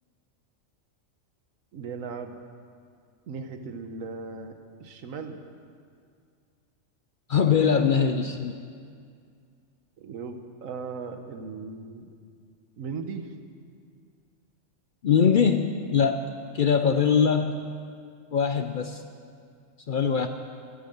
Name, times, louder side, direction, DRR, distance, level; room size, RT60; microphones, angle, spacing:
voice 1, 1.7-2.4 3.3-5.4 10.0-12.1 12.8-13.3, right 4 dB, 90° right, 7 dB, 1.4 m, -37 dB
voice 2, 7.3-8.6 15.0-17.7 18.3-19.0 19.9-20.3, left 6 dB, 55° left, 7 dB, 0.6 m, -22 dB
11.5 x 11.0 x 7.8 m, 2.2 s
omnidirectional pair, 1.3 m